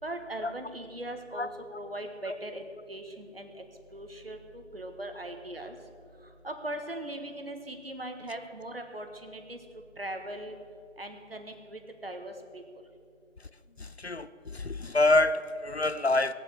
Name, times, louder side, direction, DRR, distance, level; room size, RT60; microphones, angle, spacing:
voice 1, 0.0-2.6 2.9-3.6 3.9-5.8 6.4-9.6 10.0-10.6 11.0-12.6, right 1 dB, 50° right, 6 dB, 1.5 m, -39 dB
voice 2, 13.8-16.3, left 2 dB, 55° left, 13 dB, 0.6 m, -26 dB
19.0 x 7.4 x 7.2 m, 2.4 s
figure-of-eight pair, 170°, 38 cm